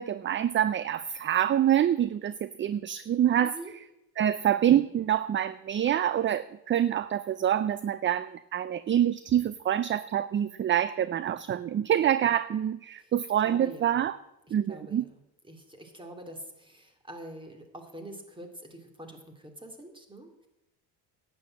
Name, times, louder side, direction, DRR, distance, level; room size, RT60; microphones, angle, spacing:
voice 1, 0.0-3.6 4.2-14.2 14.5-15.1, right 10 dB, 30° right, 16 dB, 0.4 m, -26 dB
voice 2, 3.4-3.7 13.0-13.1 13.4-14.0 14.5-15.2 15.4-20.5, right 1 dB, 10° right, 4 dB, 2.6 m, -45 dB
11.5 x 8.6 x 7.5 m, 0.94 s
supercardioid pair, 80°, 42 cm